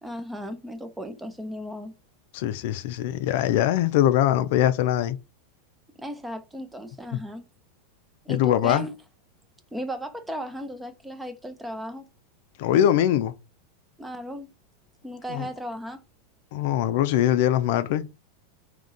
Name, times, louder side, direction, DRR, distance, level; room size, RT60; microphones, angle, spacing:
voice 1, 0.0-1.9 6.0-7.5 8.2-8.9 9.7-12.0 14.0-14.5 15.0-16.0, equal, 5° right, 0.6 m, -35 dB
voice 2, 2.3-5.2 7.1-7.2 8.3-8.9 12.6-13.4 15.3-15.5 16.5-18.1, left 11 dB, 65° left, 0.5 m, -22 dB
3.6 x 2.9 x 3.9 m
hypercardioid pair, 120°, 0 cm